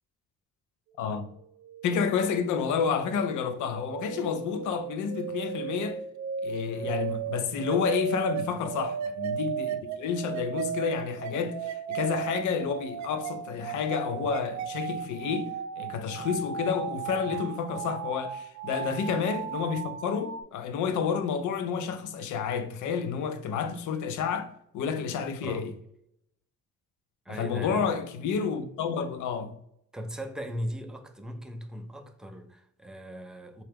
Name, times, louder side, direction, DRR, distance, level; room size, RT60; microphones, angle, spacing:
voice 1, 1.0-1.3 1.8-6.0 6.4-15.5 15.8-25.7 27.3-29.5, left 6 dB, 80° left, 0.5 m, -30 dB
sound 1, 1.3-20.4, right 8 dB, 65° right, 0.4 m, -36 dB
voice 2, 27.3-28.0 29.9-33.6, equal, ahead, 0.4 m, -38 dB
3.9 x 2.3 x 3.4 m
cardioid pair, 90°, 30 cm